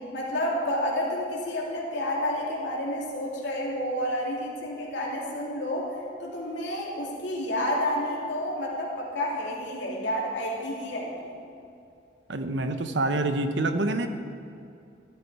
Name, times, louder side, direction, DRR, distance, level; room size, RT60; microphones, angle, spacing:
voice 1, 0.1-5.9 6.2-11.3, left 1 dB, 75° left, -4 dB, 2.6 m, -30 dB
voice 2, 12.3-14.1, right 2 dB, 70° right, 8 dB, 0.9 m, -26 dB
13.0 x 12.0 x 4.7 m, 2.5 s
head